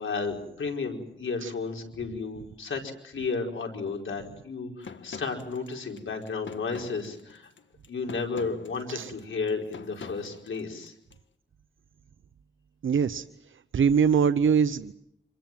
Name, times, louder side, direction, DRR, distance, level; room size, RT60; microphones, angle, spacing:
voice 1, 0.0-7.5 7.9-10.9, left 4 dB, 90° left, 2 dB, 4.9 m, -33 dB
sound 1, 4.8-11.2, left 5 dB, 75° left, 1.6 m, -46 dB
voice 2, 12.8-13.2 13.7-14.9, right 6 dB, 85° right, 11 dB, 0.9 m, -23 dB
27.0 x 22.5 x 7.6 m, 0.75 s
wide cardioid pair, 80°, 20 cm